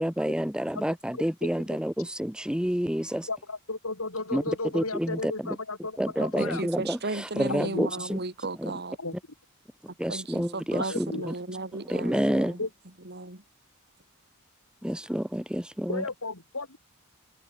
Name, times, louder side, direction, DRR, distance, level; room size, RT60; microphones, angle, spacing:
voice 1, 0.0-3.3 4.3-4.4 4.7-5.6 6.0-8.2 8.5-8.8 9.8-11.3 11.8-12.6 14.8-16.0, equal, 5° right, 1.2 m, -29 dB
voice 2, 3.3-6.6 7.5-8.0 9.0-9.1 10.8-11.3 12.6-12.7 15.9-16.8, left 3 dB, 80° left, 4.7 m, -34 dB
voice 3, 6.2-9.0 10.1-12.6 13.1-13.4, right 2 dB, 50° right, 3.4 m, -35 dB
open air
head